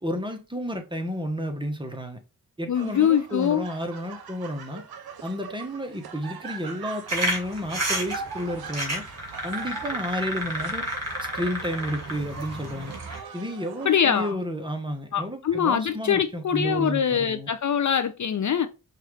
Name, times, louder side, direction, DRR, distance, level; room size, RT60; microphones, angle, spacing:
voice 1, 0.0-2.2 2.6-4.8 5.2-9.0 9.4-10.9 11.3-12.9 13.3-17.5, equal, 15° right, 1.1 m, -31 dB
voice 2, 2.7-3.6 13.8-14.4 15.1-18.7, left 8 dB, 55° left, 0.5 m, -23 dB
sound 1, 2.7-14.3, right 6 dB, 85° right, 0.7 m, -42 dB
sound 2, 7.1-13.2, right 1 dB, 45° right, 1.9 m, -31 dB
5.5 x 2.6 x 3.2 m
cardioid pair, 55°, 36 cm